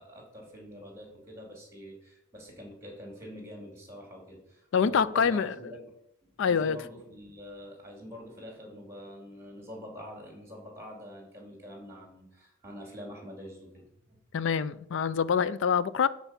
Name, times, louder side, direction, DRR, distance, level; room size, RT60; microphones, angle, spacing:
voice 1, 0.0-5.9 6.3-14.2, equal, 10° right, 2.7 m, -45 dB
voice 2, 4.7-5.5 6.4-6.8 14.3-16.1, left 6 dB, 60° left, 0.4 m, -25 dB
12.5 x 4.5 x 5.8 m
head